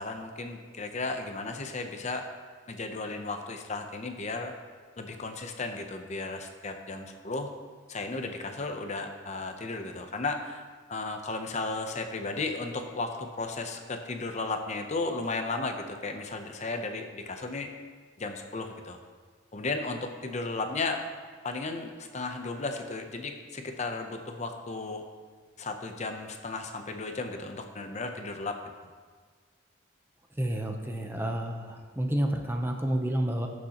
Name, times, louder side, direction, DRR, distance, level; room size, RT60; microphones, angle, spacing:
voice 1, 0.0-2.2 2.7-4.5 5.0-7.5 7.9-10.6 10.9-17.7 18.2-19.0 19.5-21.1 21.4-25.1 25.6-28.6, left 3 dB, 35° left, 5 dB, 0.7 m, -34 dB
voice 2, 30.4-33.5, right 1 dB, 10° right, 3 dB, 0.7 m, -30 dB
18.5 x 6.3 x 3.0 m, 1.5 s
head